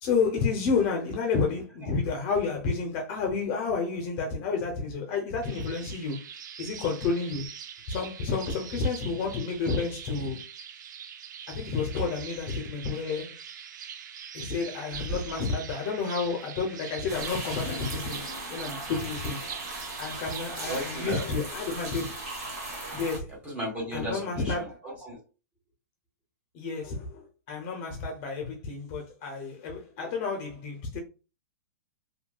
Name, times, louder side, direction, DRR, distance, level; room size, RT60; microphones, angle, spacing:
voice 1, 0.0-6.2 6.6-7.5 7.9-10.4 11.5-13.4 14.3-18.2 18.5-19.4 20.0-22.2 22.9-23.3 23.9-24.8 26.5-31.0, left 4 dB, 35° left, 0.6 m, -30 dB
sound 1, 5.4-21.3, right 8 dB, 80° right, 0.4 m, -43 dB
voice 2, 14.9-15.2 20.6-21.3 23.4-25.2, equal, 15° right, 1.3 m, -35 dB
sound 2, 17.1-23.2, right 2 dB, 55° right, 1.1 m, -38 dB
2.7 x 2.7 x 2.2 m
hypercardioid pair, 150°, 10 cm